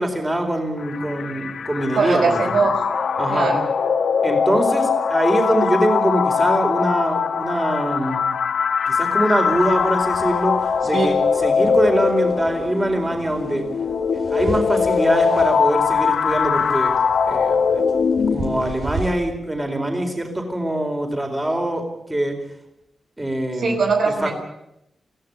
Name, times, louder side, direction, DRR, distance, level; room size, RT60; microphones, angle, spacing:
voice 1, 0.0-2.6 3.2-3.5 4.2-8.3 8.9-13.7 14.3-16.9 17.3-17.8 18.3-22.3 23.2-23.8 24.2-24.3, right 1 dB, 15° right, 4 dB, 4.5 m, -23 dB
sound 1, 0.8-18.7, left 6 dB, 75° left, 1.8 m, -21 dB
voice 2, 1.9-2.8 3.3-3.7 23.6-24.3, right 4 dB, 80° right, 4 dB, 4.9 m, -20 dB
sound 2, 9.5-19.1, right 3 dB, 60° right, 4.9 m, -34 dB
23.0 x 16.0 x 8.8 m, 0.84 s
wide cardioid pair, 100°, 0 cm